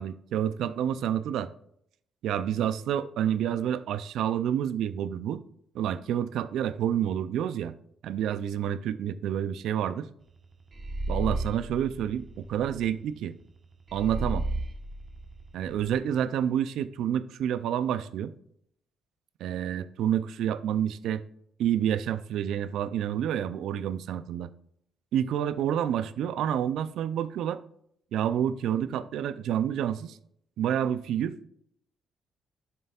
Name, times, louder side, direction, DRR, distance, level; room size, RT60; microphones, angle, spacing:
voice 1, 0.0-1.5 2.2-5.4 5.7-7.7 8.0-10.1 11.1-13.4 13.9-14.5 15.5-18.3 19.4-21.2 21.6-24.5 25.1-27.6 28.1-30.2 30.6-31.3, right 9 dB, 80° right, 0.4 m, -28 dB
sound 1, 10.7-12.9 13.9-15.9, right 2 dB, 40° right, 1.1 m, -34 dB
6.8 x 6.7 x 2.4 m
cardioid pair, 90°, 0 cm